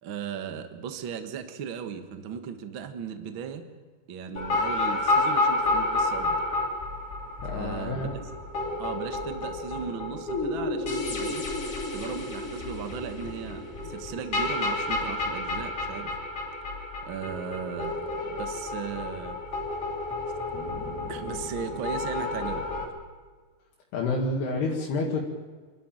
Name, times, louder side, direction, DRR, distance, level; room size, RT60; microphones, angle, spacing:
voice 1, 0.0-3.6 4.1-6.4 7.5-8.1 8.8-11.5 11.9-16.1 17.0-19.4 21.1-22.7, right 7 dB, 60° right, 7 dB, 1.3 m, -37 dB
sound 1, 4.4-22.8, left 2 dB, 40° left, 3.9 m, -30 dB
voice 2, 7.4-8.2 23.9-25.2, left 3 dB, 75° left, -1 dB, 4.0 m, -28 dB
27.0 x 12.5 x 9.0 m, 1.4 s
omnidirectional pair, 4.7 m